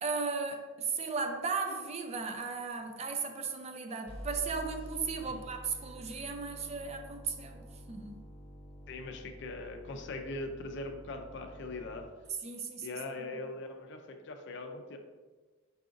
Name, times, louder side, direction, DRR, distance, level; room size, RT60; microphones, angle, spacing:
voice 1, 0.0-8.2 12.4-13.0, right 4 dB, 35° right, 5 dB, 0.4 m, -36 dB
sound 1, 4.1-12.1, equal, 30° left, 1.0 m, -48 dB
voice 2, 8.9-12.0 12.8-15.0, left 2 dB, 60° left, 5 dB, 0.5 m, -41 dB
4.8 x 3.8 x 2.5 m, 1.3 s
head